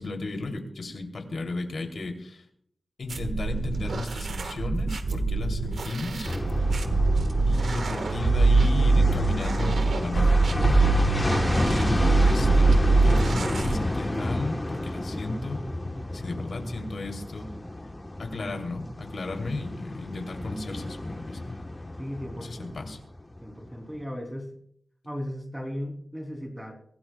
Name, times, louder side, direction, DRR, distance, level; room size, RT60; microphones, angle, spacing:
voice 1, 0.0-2.4 3.0-6.3 6.6-6.8 7.5-11.2 11.6-12.7 13.0-15.6 16.1-17.5 18.2-21.6 22.4-23.0, left 2 dB, 65° left, 3 dB, 2.9 m, -34 dB
sound 1, 3.1-13.8, right 3 dB, 80° right, 1.4 m, -23 dB
sound 2, 6.2-23.7 24.0-24.1, left 1 dB, 15° left, 1.1 m, -30 dB
voice 2, 22.0-22.7 23.4-24.5 25.0-26.7, equal, 5° right, 3 dB, 3.0 m, -36 dB
25.0 x 17.5 x 2.3 m, 0.63 s
wide cardioid pair, 135°, 0 cm